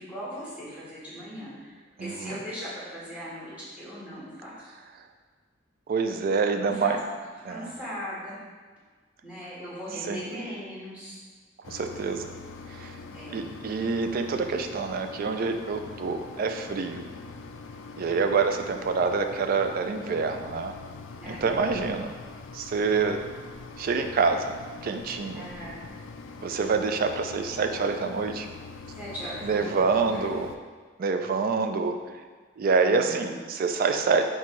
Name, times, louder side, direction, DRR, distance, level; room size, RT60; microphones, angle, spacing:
voice 1, 0.0-1.7 2.0-4.7 6.5-7.0 7.5-8.4 9.2-11.2 13.1-13.5 18.1-18.4 21.2-21.7 25.3-25.8 28.8-30.3 32.8-33.4, equal, 5° right, -9 dB, 1.5 m, -39 dB
voice 2, 2.0-2.4 5.9-7.0 7.4-7.7 10.0-10.2 11.7-12.3 12.7-12.9 13.3-17.0 18.0-20.7 21.3-22.1 22.5-23.2 23.8-24.5 24.8-25.5 26.4-28.5 29.4-30.5 31.0-32.0 32.6-34.2, right 4 dB, 50° right, 6 dB, 0.3 m, -26 dB
Mechanisms, 11.6-30.6, left 4 dB, 70° left, 0.3 m, -43 dB
4.2 x 3.6 x 3.1 m, 1.5 s
head